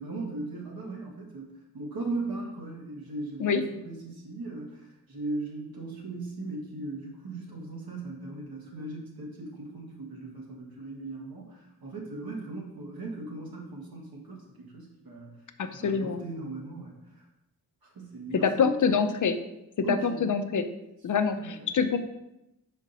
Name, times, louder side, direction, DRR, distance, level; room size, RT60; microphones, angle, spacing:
voice 1, 0.0-1.5 1.7-15.4 15.8-17.3 17.8-18.7 19.8-20.4 21.3-21.8, right 2 dB, 80° right, -1 dB, 1.7 m, -38 dB
voice 2, 15.6-16.2 18.3-19.4 19.8-20.6 21.0-21.4 21.7-22.0, left 6 dB, 60° left, 9 dB, 0.6 m, -25 dB
5.2 x 5.1 x 4.0 m, 0.88 s
cardioid pair, 70°, 36 cm